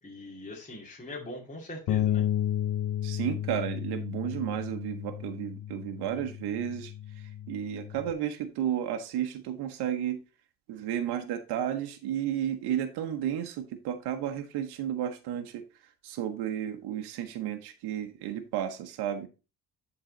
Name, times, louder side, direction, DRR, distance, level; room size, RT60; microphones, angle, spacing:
voice 1, 0.0-2.2, left 1 dB, 20° left, -3 dB, 2.5 m, -42 dB
Bass guitar, 1.9-8.1, left 11 dB, 60° left, 0.5 m, -32 dB
voice 2, 3.0-10.2 10.7-15.6 16.0-19.3, right 10 dB, 85° right, 6 dB, 1.0 m, -33 dB
11.5 x 3.9 x 3.9 m, 0.31 s
cardioid pair, 135°, 39 cm